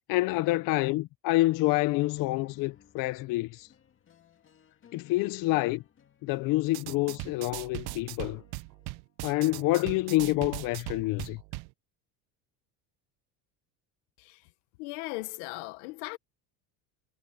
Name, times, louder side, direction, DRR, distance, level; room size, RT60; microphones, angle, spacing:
voice 1, 0.1-3.7 4.9-5.8 6.2-8.4 9.2-11.4, left 19 dB, 55° left, 0.6 m, -27 dB
sound 1, 1.6-9.0, left 8 dB, 30° left, 2.3 m, -60 dB
sound 2, 6.7-11.7, right 23 dB, 70° right, 0.8 m, -40 dB
voice 2, 14.2-14.5 14.8-16.2, left 22 dB, 85° left, 1.3 m, -38 dB
cardioid pair, 155°, 40 cm